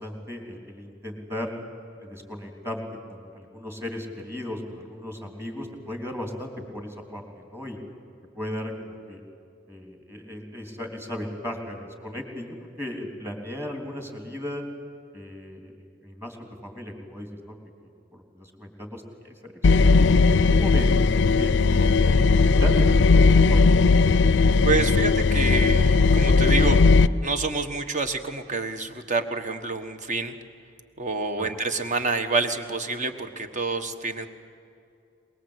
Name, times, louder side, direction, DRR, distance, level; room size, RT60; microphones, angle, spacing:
voice 1, 0.0-1.5 2.0-2.8 3.1-7.8 8.3-9.2 9.7-14.6 15.1-15.7 16.0-17.5 18.1-20.1 20.6-20.9 21.3-23.8 31.4-31.5, left 1 dB, 15° right, 3 dB, 3.2 m, -36 dB
sound 1, 19.6-27.1, left 4 dB, 65° left, 0.5 m, -18 dB
voice 2, 24.6-26.8 27.2-30.3 31.0-34.3, right 3 dB, 40° right, 8 dB, 1.4 m, -27 dB
23.0 x 21.5 x 8.2 m, 2.5 s
head